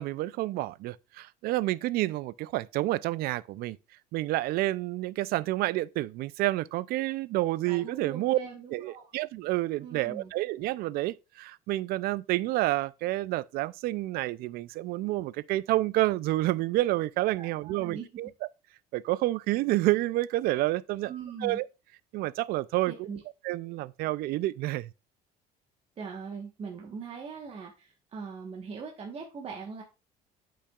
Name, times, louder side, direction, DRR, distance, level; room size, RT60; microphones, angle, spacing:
voice 1, 0.0-3.8 4.1-8.4 8.7-18.3 18.9-21.1 21.4-21.7 22.1-23.1 23.4-24.9, right 17 dB, 70° right, 0.4 m, -29 dB
voice 2, 7.6-9.1 9.8-10.3 17.3-18.1 21.0-21.6 22.9-23.2 26.0-29.8, right 5 dB, 35° right, 1.3 m, -41 dB
8.5 x 5.6 x 2.4 m
cardioid pair, 110°, 17 cm